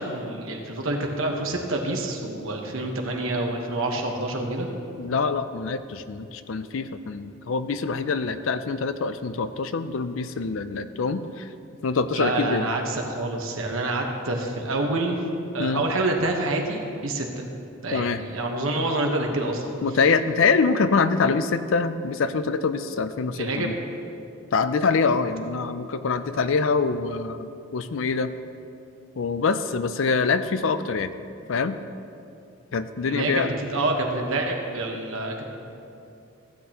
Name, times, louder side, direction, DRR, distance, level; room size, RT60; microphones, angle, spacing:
voice 1, 0.0-4.7 12.1-15.2 15.5-17.5 17.8-19.7 23.3-23.7 33.0-35.3, right 2 dB, 75° right, 2 dB, 1.2 m, -27 dB
voice 2, 5.0-11.5 11.8-12.7 15.6-15.8 17.9-18.2 19.8-23.7 24.5-28.3 29.2-31.1 31.5-31.8 32.7-33.5, left 4 dB, 70° left, 12 dB, 0.4 m, -25 dB
15.5 x 8.4 x 3.0 m, 2.7 s
head